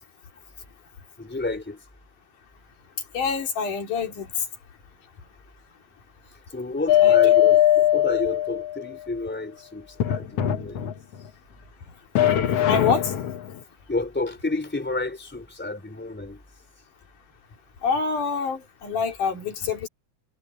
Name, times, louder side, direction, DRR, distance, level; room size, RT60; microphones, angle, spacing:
voice 1, 1.2-1.8 6.5-10.9 13.9-16.4, left 2 dB, 5° left, 3.3 m, -31 dB
voice 2, 3.1-4.3 7.0-7.2 12.7-13.1 17.8-19.9, left 5 dB, 85° left, 4.6 m, -26 dB
sound 1, 6.9-8.9 10.0-11.2 12.1-13.5, left 12 dB, 60° left, 1.9 m, -20 dB
omnidirectional pair, 3.5 m